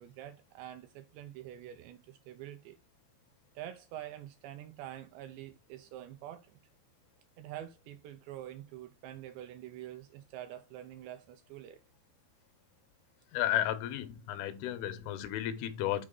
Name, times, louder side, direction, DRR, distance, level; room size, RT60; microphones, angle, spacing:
voice 1, 0.0-2.8 3.6-6.6 7.4-11.8, right 12 dB, 85° right, 2.5 m, -46 dB
voice 2, 13.3-16.1, left 12 dB, 90° left, 3.3 m, -33 dB
7.5 x 4.8 x 3.7 m
omnidirectional pair, 5.4 m